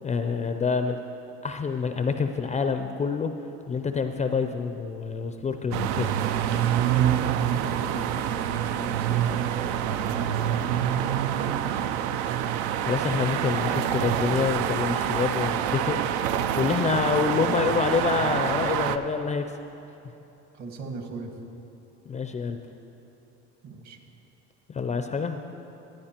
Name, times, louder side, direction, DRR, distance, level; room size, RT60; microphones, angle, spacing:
voice 1, 0.0-1.0 1.4-3.3 3.7-6.1 12.8-16.0 16.5-19.4 22.1-22.6 24.7-25.4, left 5 dB, 20° left, 7 dB, 0.4 m, -27 dB
sound 1, 5.7-19.0, right 10 dB, 80° right, 0.5 m, -26 dB
voice 2, 7.4-10.9 11.3-11.9 20.5-21.3 23.6-24.0, right 3 dB, 55° right, 4 dB, 1.5 m, -39 dB
16.5 x 9.6 x 2.9 m, 2.9 s
supercardioid pair, 90°, 33 cm